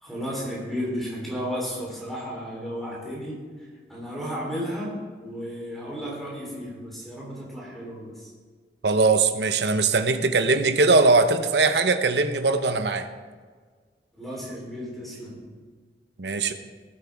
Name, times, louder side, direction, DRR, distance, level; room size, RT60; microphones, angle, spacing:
voice 1, 0.0-3.4 3.9-8.3 14.2-15.5, equal, ahead, -5 dB, 3.6 m, -33 dB
voice 2, 8.8-13.1 16.2-16.5, right 3 dB, 75° right, 9 dB, 0.8 m, -21 dB
18.0 x 8.9 x 3.5 m, 1.6 s
head